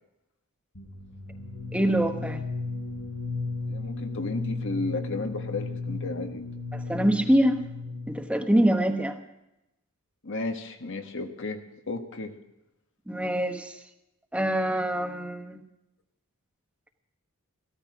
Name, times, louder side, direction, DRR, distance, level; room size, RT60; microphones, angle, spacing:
sound 1, 0.7-8.4, left 3 dB, 85° left, 5.4 m, -35 dB
voice 1, 1.7-2.4 6.7-7.6 8.1-9.2 13.1-13.8 14.3-15.6, right 1 dB, 5° right, 5 dB, 1.1 m, -24 dB
voice 2, 3.6-6.4 10.2-11.6 11.9-12.3, left 3 dB, 60° left, 5 dB, 1.5 m, -33 dB
15.5 x 13.5 x 6.3 m, 0.88 s
head